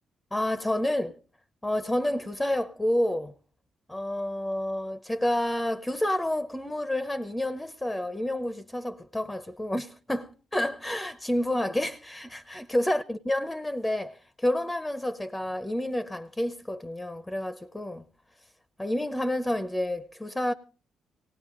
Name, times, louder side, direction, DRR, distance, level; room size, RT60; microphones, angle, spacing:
voice 1, 0.3-1.2 1.6-3.3 3.9-18.0 18.8-20.5, left 1 dB, 10° left, 0.7 m, -29 dB
18.0 x 18.0 x 3.7 m
cardioid pair, 90°, 0 cm